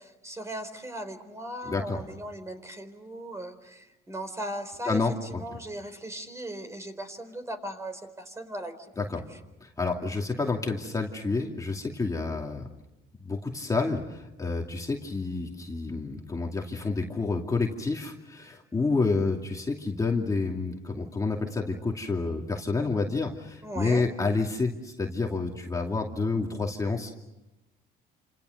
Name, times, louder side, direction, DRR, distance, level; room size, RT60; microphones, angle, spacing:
voice 1, 0.0-5.0 5.3-8.7 23.6-24.1, right 1 dB, 15° right, 8 dB, 4.2 m, -38 dB
voice 2, 1.7-2.0 4.9-5.4 9.0-9.2 9.6-12.7 13.2-27.1, left 3 dB, 20° left, 0 dB, 2.6 m, -29 dB
28.5 x 27.5 x 6.6 m, 1.0 s
cardioid pair, 110°, 17 cm